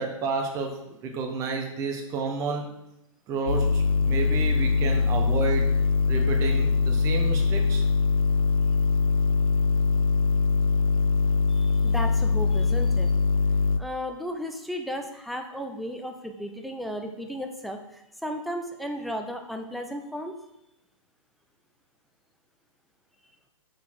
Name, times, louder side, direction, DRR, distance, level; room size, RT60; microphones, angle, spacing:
voice 1, 0.0-2.7 3.3-5.7 6.1-7.8, right 4 dB, 20° right, 2 dB, 1.1 m, -31 dB
sound 1, 3.5-13.8, left 5 dB, 85° left, 0.6 m, -22 dB
voice 2, 11.5-13.1 13.8-20.3, equal, ahead, 4 dB, 0.3 m, -34 dB
6.7 x 6.0 x 4.7 m, 0.85 s
hypercardioid pair, 155°, 17 cm